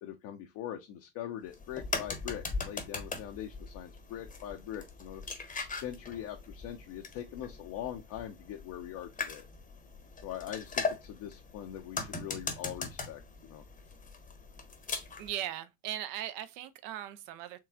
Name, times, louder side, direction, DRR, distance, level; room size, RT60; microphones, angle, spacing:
voice 1, 0.0-5.2 5.7-9.4 10.2-13.6, left 11 dB, 45° left, 0.7 m, -42 dB
sound 1, 1.5-15.3, left 4 dB, 15° left, 1.0 m, -40 dB
voice 2, 15.2-17.6, right 12 dB, 45° right, 0.7 m, -38 dB
4.5 x 3.1 x 2.3 m
figure-of-eight pair, 75°, 48 cm